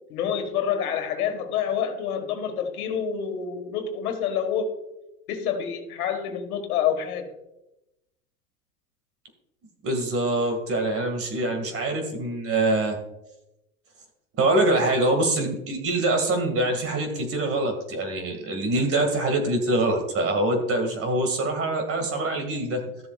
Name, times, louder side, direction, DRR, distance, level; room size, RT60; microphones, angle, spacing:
voice 1, 0.1-4.7 5.3-7.2, left 8 dB, 75° left, 6 dB, 1.7 m, -27 dB
voice 2, 9.8-13.0 14.4-22.8, right 2 dB, 30° right, 5 dB, 2.1 m, -24 dB
14.0 x 7.0 x 2.4 m, 0.89 s
hypercardioid pair, 110°, 44 cm